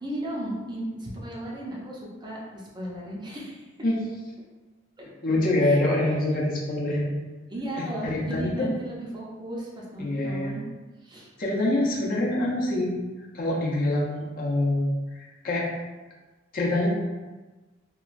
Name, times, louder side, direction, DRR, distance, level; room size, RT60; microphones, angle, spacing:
voice 1, 0.0-3.6 5.0-5.1 5.6-5.8 7.5-10.6 11.0-11.3, right 1 dB, 20° right, -4 dB, 0.5 m, -35 dB
voice 2, 5.2-7.1 7.8-8.7 10.0-10.5 11.4-13.0 13.3-15.7 16.5-16.9, left 1 dB, 45° left, -4 dB, 0.6 m, -25 dB
2.9 x 2.3 x 2.4 m, 1.2 s
head